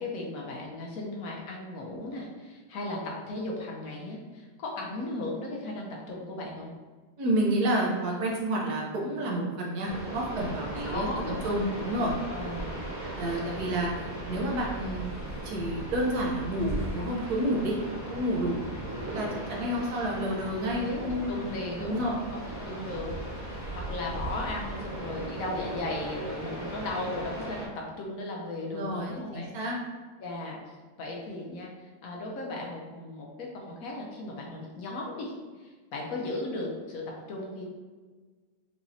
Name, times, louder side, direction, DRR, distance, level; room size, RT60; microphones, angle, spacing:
voice 1, 0.0-6.7 10.8-11.6 12.3-12.7 20.8-23.1 23.5-29.5 30.2-30.6 31.0-37.7, left 2 dB, 65° left, -2 dB, 1.0 m, -36 dB
voice 2, 7.2-11.1 11.4-12.1 13.1-15.1 15.4-17.8 18.1-18.6 19.1-21.4 21.8-22.1 22.6-22.8 28.7-29.8, right 1 dB, 70° right, -2 dB, 1.3 m, -30 dB
sound 1, 9.9-27.7, right 1 dB, 25° left, 0.4 m, -37 dB
4.8 x 2.9 x 2.7 m, 1.4 s
omnidirectional pair, 1.7 m